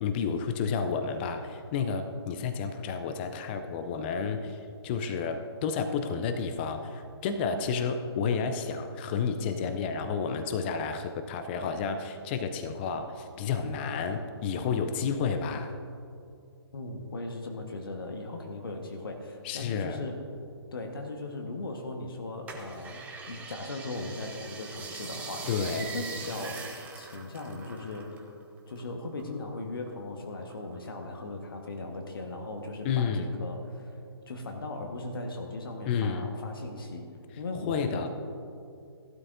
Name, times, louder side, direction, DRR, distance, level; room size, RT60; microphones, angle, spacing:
voice 1, 0.0-15.8 19.4-20.0 25.5-25.9 32.8-33.3 35.9-36.2 37.5-38.1, left 6 dB, 25° left, 7 dB, 0.5 m, -31 dB
voice 2, 16.7-20.2 20.7-25.5 25.8-26.7 27.0-28.2 28.7-34.0 34.3-37.1 37.4-38.1, left 2 dB, 55° left, 3 dB, 1.4 m, -38 dB
sound 1, 22.5-28.3 28.6-29.9 30.3-31.2 31.7-31.8, right 4 dB, 10° right, 0.8 m, -42 dB
15.5 x 12.0 x 2.6 m, 2.4 s
figure-of-eight pair, 135°, 14 cm